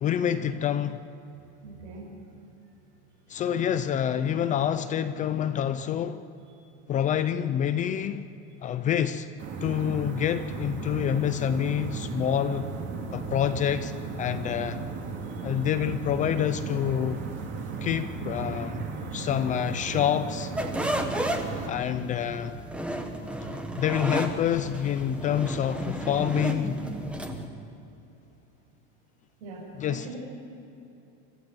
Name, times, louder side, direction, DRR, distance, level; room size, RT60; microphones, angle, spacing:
voice 1, 0.0-1.0 3.3-6.2 6.9-8.3 8.6-9.3 9.6-12.7 13.1-13.9 14.2-14.8 15.4-17.2 17.8-18.8 19.1-20.5 21.7-22.6 23.7-26.8 29.7-30.2, left 9 dB, 20° left, 0.4 m, -27 dB
voice 2, 1.6-2.1 19.1-19.3 29.4-29.7 30.0-30.2, right 3 dB, 80° right, 6.9 m, -42 dB
sound 1, 9.4-21.7, right 4 dB, 35° right, 2.6 m, -35 dB
sound 2, 20.6-27.5, right 1 dB, 5° right, 1.3 m, -33 dB
25.5 x 15.0 x 7.9 m
supercardioid pair, 160°, 34 cm